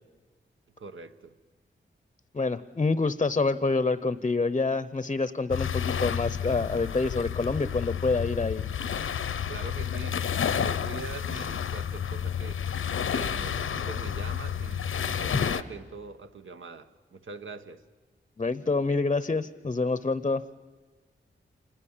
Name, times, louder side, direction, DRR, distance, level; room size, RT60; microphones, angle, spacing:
voice 1, 0.8-1.4 9.5-10.2 10.6-12.6 13.1-17.8, right 4 dB, 75° right, 1.2 m, -43 dB
voice 2, 2.3-8.6 18.4-20.4, left 3 dB, 30° left, 0.7 m, -27 dB
sound 1, 5.5-15.6, left 8 dB, 85° left, 0.8 m, -30 dB
26.5 x 20.0 x 7.3 m
wide cardioid pair, 85°, 21 cm